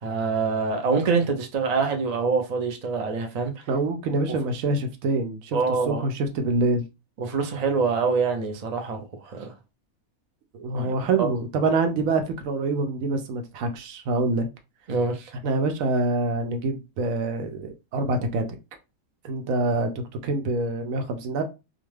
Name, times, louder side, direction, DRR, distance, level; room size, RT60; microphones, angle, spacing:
voice 1, 0.0-3.5 5.5-6.0 7.2-9.5 10.7-11.3 14.9-15.3, right 4 dB, 60° right, 0.4 m, -25 dB
voice 2, 3.7-6.8 10.5-14.5 15.4-18.4 19.2-21.4, right 2 dB, 75° right, 1.0 m, -26 dB
2.5 x 2.4 x 3.1 m
omnidirectional pair, 1.5 m